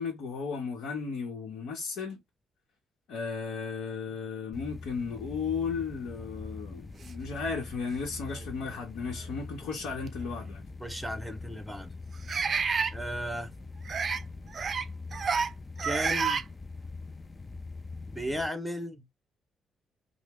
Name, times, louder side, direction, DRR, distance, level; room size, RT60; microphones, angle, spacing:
voice 1, 0.0-2.2 3.1-10.6, left 5 dB, 85° left, 0.9 m, -35 dB
sound 1, 4.5-18.5, left 3 dB, 25° left, 0.4 m, -43 dB
sound 2, 7.5-7.6 8.3-8.5 10.1-10.2 12.3-12.9 13.8-14.2 14.5-14.8 15.1-15.5 15.8-16.4, right 5 dB, 45° right, 0.4 m, -29 dB
voice 2, 10.8-11.9 12.9-13.5 15.8-16.4 18.1-19.0, equal, 5° right, 0.8 m, -35 dB
2.9 x 2.1 x 3.4 m
cardioid pair, 90°, 0 cm